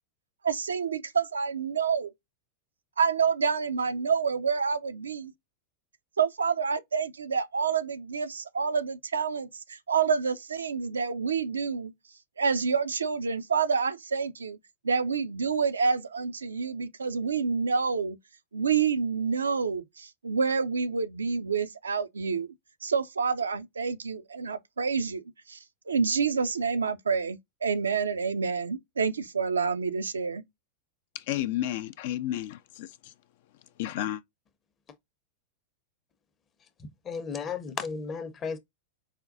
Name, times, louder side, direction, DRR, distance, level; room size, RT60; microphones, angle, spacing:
voice 1, 0.4-2.1 3.0-5.3 6.2-11.9 12.4-14.6 14.8-18.2 18.5-22.5 22.8-25.2 25.5-25.6 25.9-30.4, right 5 dB, 75° right, 0.4 m, -28 dB
voice 2, 31.1-33.1 33.8-34.2, left 13 dB, 50° left, 0.3 m, -32 dB
voice 3, 36.8-38.6, left 5 dB, 25° left, 0.7 m, -34 dB
4.9 x 2.2 x 2.5 m
figure-of-eight pair, 90°, 0 cm